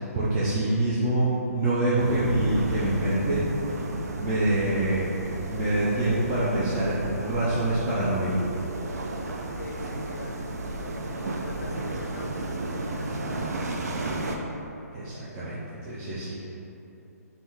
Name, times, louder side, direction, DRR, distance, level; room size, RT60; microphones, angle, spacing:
voice 1, 0.1-3.4 4.2-5.0 5.4-7.0 7.2-8.3 14.9-15.6 15.9-16.3, right 1 dB, 15° right, -11 dB, 0.4 m, -25 dB
sound 1, 2.0-14.4, right 2 dB, 70° right, 0.5 m, -32 dB
big monster shout, 5.9-9.6, right 1 dB, 85° right, 1.2 m, -44 dB
voice 2, 9.6-10.4 10.8-14.4 16.2-16.3, left 3 dB, 75° left, 3 dB, 0.5 m, -45 dB
3.5 x 2.7 x 4.4 m, 2.9 s
hypercardioid pair, 165°, 9 cm